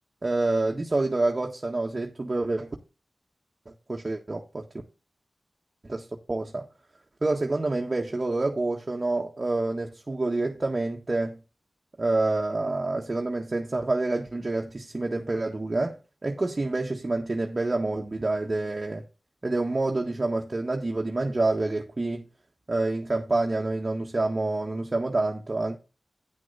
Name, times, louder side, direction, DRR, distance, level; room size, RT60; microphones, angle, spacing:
voice 1, 0.2-2.7 3.9-4.7 5.9-6.7 7.2-11.4 12.0-19.0 19.4-22.2 22.7-25.8, right 2 dB, 45° right, 1.6 m, -27 dB
10.5 x 6.4 x 4.1 m
cardioid pair, 40°, 0 cm